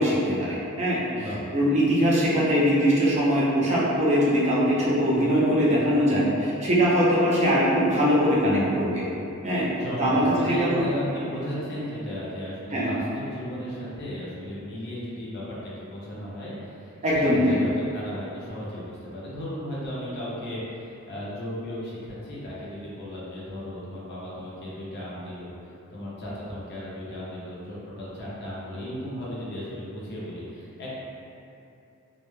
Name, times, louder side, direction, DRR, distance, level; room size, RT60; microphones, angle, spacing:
voice 1, 0.0-1.2 1.5-9.0 9.4-9.7 10.0-10.8 12.7-12.9 17.0-17.6, equal, 30° right, -7 dB, 0.4 m, -22 dB
voice 2, 9.8-25.5 25.9-30.9, equal, 50° left, -7 dB, 0.5 m, -35 dB
2.1 x 2.0 x 3.0 m, 2.7 s
head